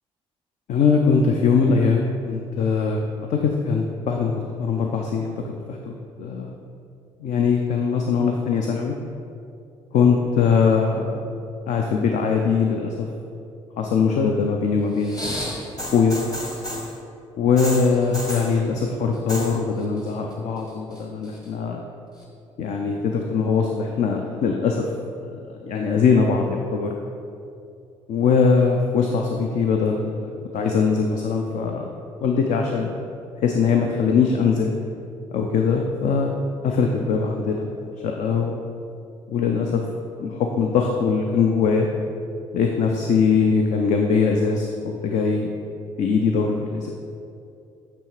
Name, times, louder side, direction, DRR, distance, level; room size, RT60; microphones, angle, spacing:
voice 1, 0.7-5.3 5.7-6.5 7.2-8.9 9.9-11.3 11.7-13.1 13.8-16.2 17.4-21.8 22.6-24.9 25.5-26.9 28.1-31.9 32.2-32.9 33.4-34.7 35.3-36.4 36.6-38.6 39.3-39.8 40.2-41.9 42.5-45.5 46.0-46.9, left 5 dB, 50° left, 2 dB, 0.5 m, -21 dB
sound 1, 15.0-16.9 17.6-18.5 19.1-19.6 19.8-20.3 20.7-21.5 22.2-22.3, equal, 25° left, 1.3 m, -32 dB
8.4 x 3.1 x 4.5 m, 2.6 s
figure-of-eight pair, 45°, 16 cm